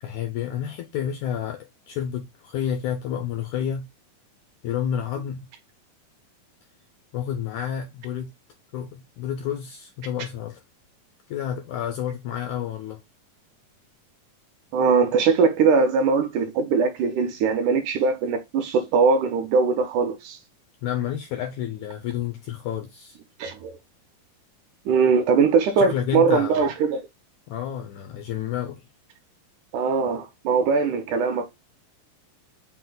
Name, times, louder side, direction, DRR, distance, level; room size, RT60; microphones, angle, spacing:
voice 1, 0.0-3.9 4.6-5.5 7.1-8.3 8.7-10.6 11.3-13.0 20.8-23.2 25.8-26.7 27.5-28.8, left 9 dB, 80° left, 1.7 m, -30 dB
voice 2, 14.7-20.4 23.4-23.8 24.9-27.0 29.7-31.5, right 5 dB, 80° right, 1.9 m, -21 dB
5.9 x 2.1 x 3.8 m
omnidirectional pair, 3.9 m